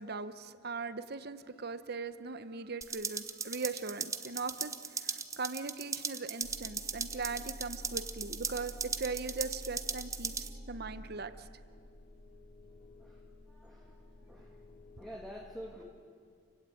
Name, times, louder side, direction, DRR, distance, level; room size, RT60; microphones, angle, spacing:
voice 1, 0.0-11.5, right 4 dB, 55° right, 12 dB, 1.0 m, -40 dB
sound 1, 2.8-10.5, right 5 dB, 15° right, 0.9 m, -38 dB
sound 2, 6.4-15.2, equal, 55° left, 6.6 m, -50 dB
voice 2, 13.0-14.7 15.0-15.8, equal, ahead, -1 dB, 1.9 m, -49 dB
29.5 x 16.5 x 9.1 m, 2.1 s
head